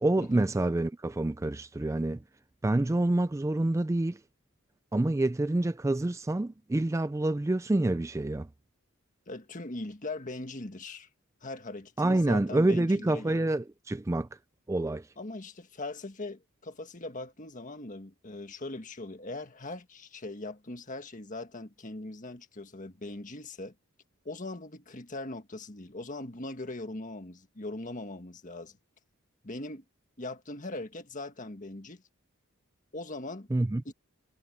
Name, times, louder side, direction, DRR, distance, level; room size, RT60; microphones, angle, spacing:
voice 1, 0.0-2.2 2.6-4.2 4.9-8.5 12.0-14.3 14.7-15.1 33.5-33.8, right 2 dB, 15° right, 0.3 m, -27 dB
voice 2, 9.3-11.1 11.4-13.5 15.2-23.7 24.3-28.8 29.4-29.8 30.2-32.0 32.9-33.5 33.9-34.0, left 2 dB, 35° left, 1.7 m, -40 dB
head